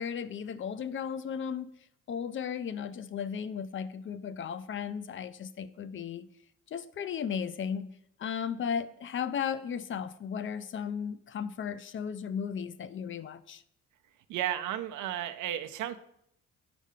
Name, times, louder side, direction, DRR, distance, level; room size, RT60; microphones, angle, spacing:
voice 1, 0.0-1.7 2.1-6.3 6.7-13.6, left 7 dB, 40° left, 0.4 m, -35 dB
voice 2, 14.3-16.0, right 11 dB, 80° right, 0.6 m, -33 dB
5.4 x 5.1 x 5.0 m
cardioid pair, 90°, 30 cm